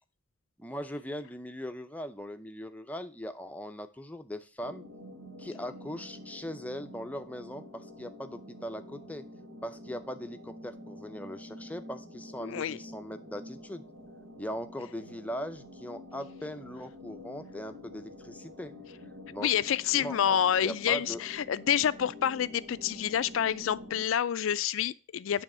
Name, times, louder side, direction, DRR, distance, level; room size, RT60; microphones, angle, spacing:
voice 1, 0.6-4.9 5.4-9.2 9.6-13.8 14.4-18.7 19.3-19.5 19.9-21.2, equal, 5° left, 0.5 m, -40 dB
sound 1, 4.6-24.0, left 1 dB, 85° right, 1.7 m, -48 dB
voice 2, 12.4-12.8 19.4-25.4, left 9 dB, 75° left, 0.4 m, -28 dB
9.0 x 3.5 x 6.0 m
head